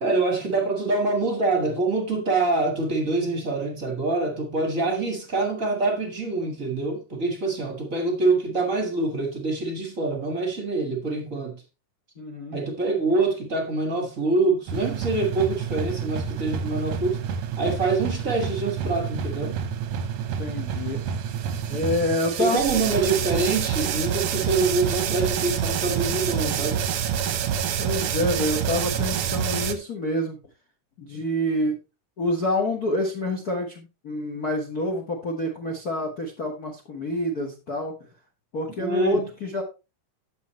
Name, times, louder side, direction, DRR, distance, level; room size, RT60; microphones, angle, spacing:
voice 1, 0.0-11.6 12.5-17.2 17.6-19.6 22.4-26.8 38.8-39.3, right 3 dB, 40° right, 1.2 m, -25 dB
voice 2, 12.2-12.6 20.4-21.0 21.7-22.6 27.8-30.4 31.0-31.8 32.2-37.9 38.5-39.6, left 1 dB, 50° left, 1.1 m, -27 dB
sound 1, 14.7-29.7, right 8 dB, 70° right, 1.7 m, -28 dB
11.0 x 7.5 x 3.1 m
omnidirectional pair, 4.0 m